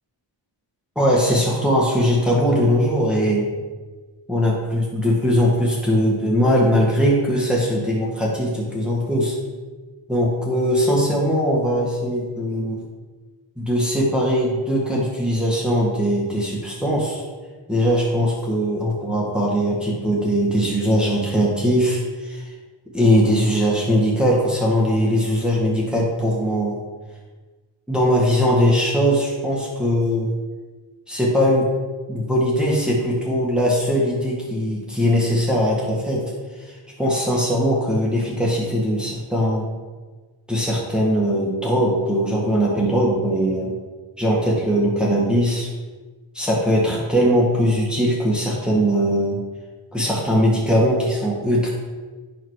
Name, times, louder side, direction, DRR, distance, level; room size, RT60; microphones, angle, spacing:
voice 1, 1.0-3.6 4.3-9.4 10.1-12.8 13.6-17.2 17.7-22.5 22.9-26.8 27.9-30.3 31.1-31.7 32.1-36.2 36.6-39.7 40.5-43.7 44.2-45.7 46.3-49.4 49.9-51.7, equal, ahead, -4 dB, 1.9 m, -20 dB
10.0 x 4.1 x 4.9 m, 1.3 s
cardioid pair, 55°, 49 cm